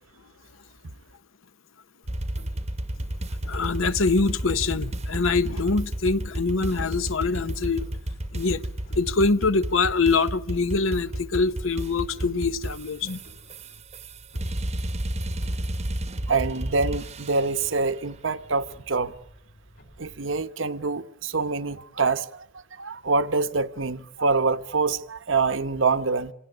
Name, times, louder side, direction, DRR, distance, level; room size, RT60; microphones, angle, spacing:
Clock, 2.0-20.5, equal, 50° left, 4.5 m, -52 dB
sound 1, 2.1-17.6, right 1 dB, 30° right, 0.9 m, -32 dB
voice 1, 3.4-7.9 8.3-8.6 8.9-13.2, left 4 dB, 75° left, 0.9 m, -24 dB
voice 2, 16.3-19.1 20.0-26.3, right 4 dB, 65° right, 0.9 m, -25 dB
27.5 x 17.5 x 9.8 m
head